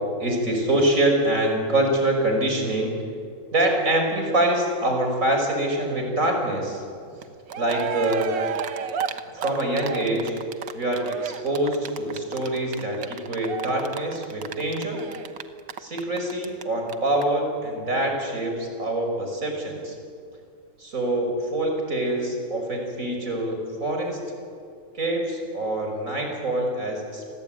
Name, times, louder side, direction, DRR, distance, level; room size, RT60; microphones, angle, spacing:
voice 1, 0.2-3.0 3.5-6.8 7.6-8.3 9.4-10.3 10.7-15.0 15.8-19.9 20.8-24.2 24.9-27.3, right 1 dB, 40° right, 3 dB, 5.8 m, -25 dB
Cheering, 7.2-7.3 7.5-16.6 16.9-17.0 17.2-17.3, right 7 dB, 65° right, 1.7 m, -32 dB
29.5 x 22.0 x 9.1 m, 2.3 s
omnidirectional pair, 2.3 m